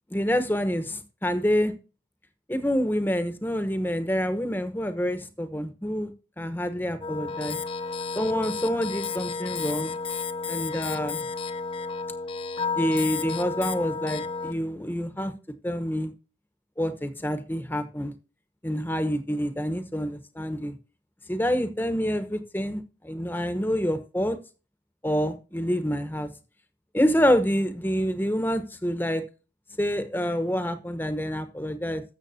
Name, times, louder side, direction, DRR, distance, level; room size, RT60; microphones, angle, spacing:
voice 1, 0.1-1.8 2.5-7.6 8.1-9.9 10.5-11.3 12.8-15.3 15.6-16.1 16.8-18.1 18.6-20.8 21.3-24.4 25.0-26.3 26.9-29.2 29.7-32.0, equal, 10° left, 10 dB, 1.0 m, -27 dB
sound 1, 7.0-14.5, left 5 dB, 30° left, 0.7 m, -32 dB
13.5 x 7.2 x 2.8 m, 0.32 s
head